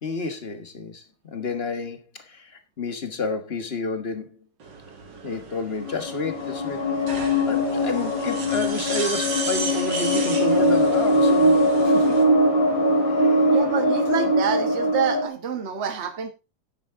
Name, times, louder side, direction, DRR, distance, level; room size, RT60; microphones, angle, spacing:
voice 1, 0.0-4.4 5.2-12.2 13.1-13.5, left 3 dB, 30° left, 1.4 m, -31 dB
sound 1, 4.6-12.2, right 4 dB, 55° right, 2.8 m, -34 dB
sound 2, 5.8-15.3, equal, 55° left, 3.0 m, -21 dB
voice 2, 13.5-16.3, right 7 dB, 35° right, 1.4 m, -27 dB
9.7 x 9.5 x 3.6 m
omnidirectional pair, 2.4 m